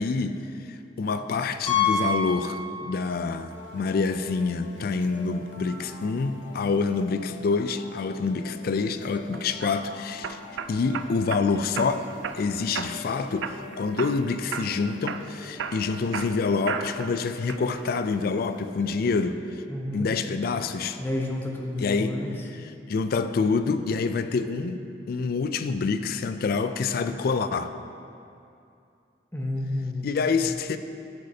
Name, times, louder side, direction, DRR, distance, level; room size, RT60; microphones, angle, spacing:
voice 1, 0.0-10.4 10.7-12.1 12.3-19.6 19.9-21.0 21.8-22.2 22.5-24.8 25.1-27.8 30.0-30.8, left 4 dB, 55° left, 10 dB, 0.3 m, -27 dB
Piano, 1.7-3.3 3.5-3.7 4.3-4.4 4.6-4.7 6.8-6.9, left 5 dB, 30° left, 1.4 m, -27 dB
sound 1, 3.5-19.5, left 2 dB, 80° left, 0.9 m, -45 dB
sound 2, 9.3-9.7 10.2-11.4 11.8-12.4 12.7-13.1 13.4-14.2 14.5-14.8 15.1-17.1 17.5-18.0, right 7 dB, 85° right, 0.3 m, -34 dB
voice 2, 19.7-20.2 21.0-22.3 29.3-30.1, left 1 dB, 10° left, 0 dB, 0.8 m, -30 dB
11.5 x 6.4 x 2.8 m, 2.5 s
head